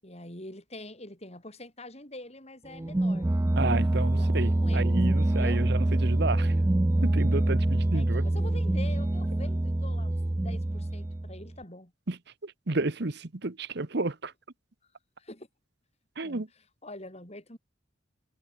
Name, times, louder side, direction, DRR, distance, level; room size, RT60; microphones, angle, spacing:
voice 1, 0.0-3.3 4.1-5.7 6.6-6.8 7.9-11.9 15.2-15.5 16.2-17.6, left 1 dB, 35° left, 7.5 m, -45 dB
sound 1, 2.7-11.5, right 1 dB, 15° right, 0.4 m, -25 dB
voice 2, 3.6-6.5 7.0-8.2 12.1-12.2 12.4-14.3 16.2-16.5, right 2 dB, 55° right, 1.1 m, -31 dB
head